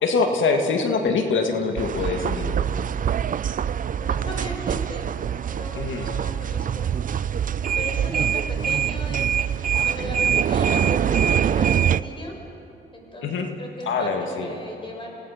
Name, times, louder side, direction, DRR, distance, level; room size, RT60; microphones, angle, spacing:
voice 1, 0.0-2.6 5.8-6.1 13.2-13.5 13.8-14.5, left 4 dB, 75° left, 4 dB, 1.9 m, -24 dB
sound 1, 1.8-12.0, right 8 dB, 40° right, 0.5 m, -24 dB
voice 2, 4.0-5.1 5.4-6.9 7.7-9.3 9.7-12.4 12.9-15.1, equal, 25° left, 0 dB, 6.0 m, -37 dB
26.5 x 17.5 x 5.7 m, 2.7 s
cardioid pair, 75°, 20 cm